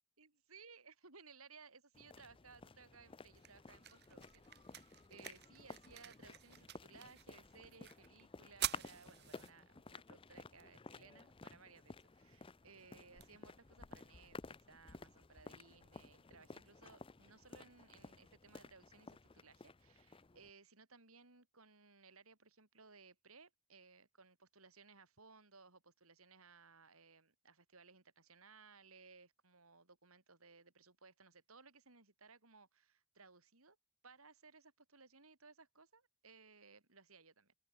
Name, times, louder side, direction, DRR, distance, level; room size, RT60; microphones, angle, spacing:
voice 1, 0.2-33.8 34.0-37.6, right 4 dB, 80° right, 5.3 m, -62 dB
sound 1, 1.9-20.5, left 3 dB, 25° left, 0.6 m, -55 dB
sound 2, 2.8-14.8, right 11 dB, 50° right, 1.6 m, -51 dB
open air
head